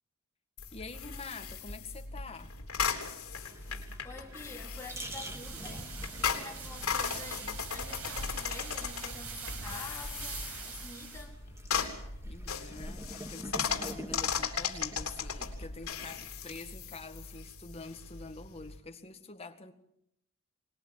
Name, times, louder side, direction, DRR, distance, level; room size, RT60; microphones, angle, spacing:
sound 1, 0.6-18.8, left 6 dB, 80° left, 3.5 m, -37 dB
voice 1, 0.7-2.5 12.3-19.7, left 3 dB, 30° left, 1.9 m, -46 dB
sound 2, 3.4-15.6, right 1 dB, 15° right, 1.9 m, -49 dB
voice 2, 4.0-11.4, left 2 dB, 15° left, 3.7 m, -48 dB
sound 3, 4.7-11.3, right 3 dB, 80° right, 5.8 m, -43 dB
24.5 x 20.5 x 7.6 m
head